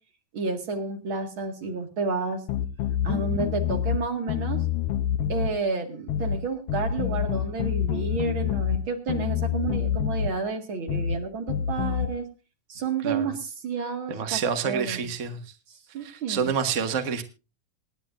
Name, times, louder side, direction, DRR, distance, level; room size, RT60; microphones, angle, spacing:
voice 1, 0.3-2.4 3.0-4.6 5.3-12.2 12.7-15.1 15.7-16.5, right 4 dB, 45° right, 2.5 m, -30 dB
sound 1, 2.5-4.0 4.3-5.5 6.1-6.4 6.7-8.8 9.1-10.3 10.9-11.2 11.5-12.1, left 9 dB, 85° left, 1.3 m, -27 dB
voice 2, 14.1-15.4 16.0-17.2, right 6 dB, 65° right, 0.7 m, -28 dB
26.5 x 10.0 x 2.6 m
omnidirectional pair, 3.6 m